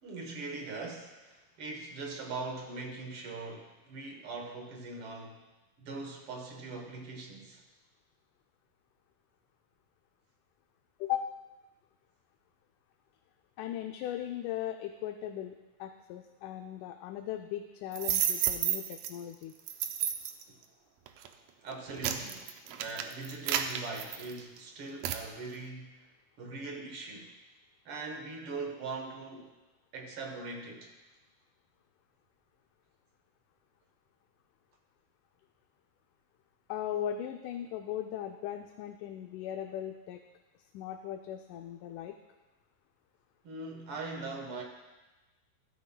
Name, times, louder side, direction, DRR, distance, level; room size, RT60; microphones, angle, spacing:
voice 1, 0.0-5.4 5.8-7.6 20.5-20.6 21.6-26.1 26.4-27.4 27.8-29.5 29.9-30.9 43.4-44.6, right 3 dB, 55° right, 2 dB, 1.7 m, -41 dB
voice 2, 11.0-11.3 13.6-19.5 36.7-40.2 40.7-42.2, left 10 dB, 80° left, 4 dB, 2.0 m, -38 dB
sound 1, 17.9-19.1 19.7-20.4 21.1-21.3 21.7-24.6 25.0-25.3, right 10 dB, 90° right, 1.5 m, -31 dB
15.0 x 12.5 x 2.3 m, 1.1 s
omnidirectional pair, 3.7 m